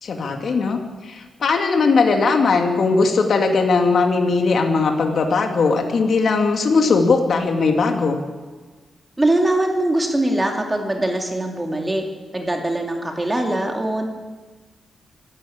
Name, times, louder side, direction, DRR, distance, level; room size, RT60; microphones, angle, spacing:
voice 1, 0.0-8.2, left 4 dB, 60° left, 3 dB, 2.3 m, -19 dB
voice 2, 9.2-12.0 12.3-14.1, right 1 dB, 15° right, 2 dB, 2.7 m, -22 dB
24.5 x 12.0 x 8.8 m, 1.3 s
cardioid pair, 105°, 0 cm